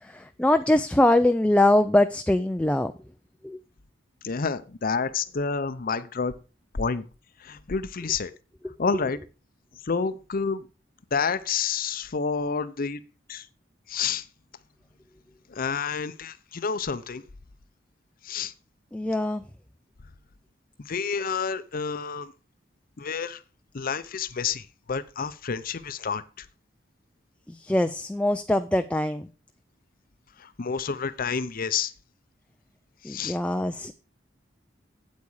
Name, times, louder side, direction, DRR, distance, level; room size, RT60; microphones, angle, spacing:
voice 1, 0.1-2.9 3.4-3.6 18.9-19.4 27.5-29.3 33.0-33.9, left 1 dB, 5° left, 8 dB, 0.4 m, -23 dB
voice 2, 4.2-6.3 6.7-7.0 7.4-8.3 8.8-9.2 9.9-10.7 11.1-13.0 13.3-13.5 13.9-14.2 15.5-17.2 18.2-18.5 20.9-22.3 23.0-23.4 23.7-26.5 30.4-31.9 33.1-33.4, left 5 dB, 50° left, 12 dB, 0.6 m, -29 dB
8.4 x 8.4 x 4.8 m, 0.34 s
head